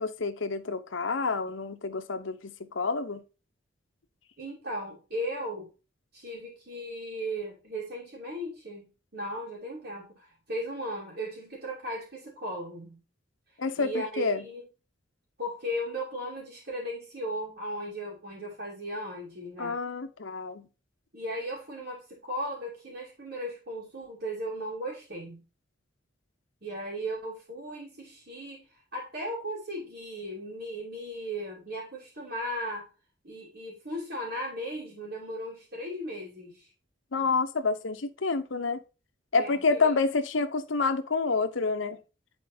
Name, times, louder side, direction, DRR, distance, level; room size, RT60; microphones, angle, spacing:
voice 1, 0.0-3.2 13.6-14.4 19.6-20.6 37.1-38.8 39.3-42.0, left 4 dB, 85° left, 0.8 m, -28 dB
voice 2, 4.4-5.7 6.1-8.9 9.1-13.0 13.8-14.6 15.4-19.8 21.1-25.4 26.6-28.6 28.9-32.9 33.2-36.7 39.3-39.9, equal, 55° right, 2.9 m, -36 dB
10.0 x 4.4 x 2.7 m
head